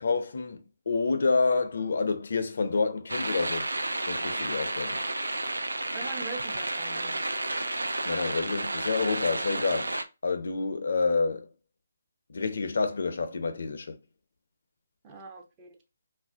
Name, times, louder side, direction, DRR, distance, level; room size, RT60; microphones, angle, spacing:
voice 1, 0.0-3.7 4.1-5.1 8.0-9.9 10.2-11.5 12.3-14.0, left 4 dB, 65° left, 0.5 m, -28 dB
sound 1, 3.1-10.0, right 2 dB, 85° right, 0.4 m, -31 dB
voice 2, 5.9-7.2 15.0-15.8, right 4 dB, 25° right, 0.6 m, -42 dB
2.4 x 2.1 x 3.4 m
figure-of-eight pair, 150°, 0 cm